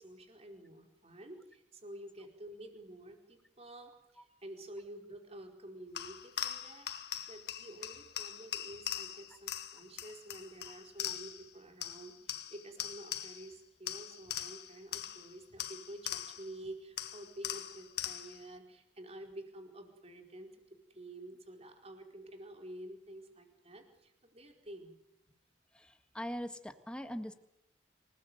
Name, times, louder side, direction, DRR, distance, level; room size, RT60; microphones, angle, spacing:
voice 1, 0.0-24.9, right 1 dB, 35° right, 4 dB, 4.5 m, -50 dB
sound 1, 6.0-11.5 11.8-13.5 13.9-16.6 17.0-18.5, left 10 dB, 55° left, 1.8 m, -41 dB
voice 2, 25.7-27.3, equal, 5° left, 7 dB, 1.8 m, -41 dB
27.5 x 19.5 x 8.1 m, 0.82 s
head